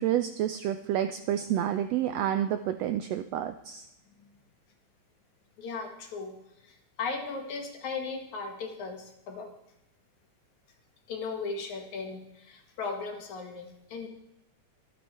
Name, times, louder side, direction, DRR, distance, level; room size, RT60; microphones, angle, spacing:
voice 1, 0.0-3.8, right 11 dB, 85° right, 9 dB, 1.4 m, -29 dB
voice 2, 5.6-6.4 6.6-9.5 11.1-14.1, left 4 dB, 65° left, 3 dB, 3.1 m, -37 dB
24.5 x 8.6 x 4.3 m, 0.87 s
omnidirectional pair, 3.6 m